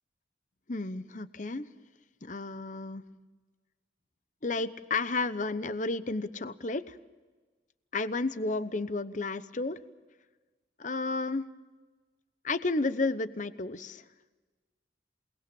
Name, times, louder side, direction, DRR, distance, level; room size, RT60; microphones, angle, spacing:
voice 1, 0.7-1.7 2.2-3.0 4.4-7.0 7.9-9.8 10.8-11.4 12.4-14.0, left 3 dB, 45° left, 13 dB, 0.9 m, -32 dB
28.5 x 20.0 x 7.0 m, 1.3 s
head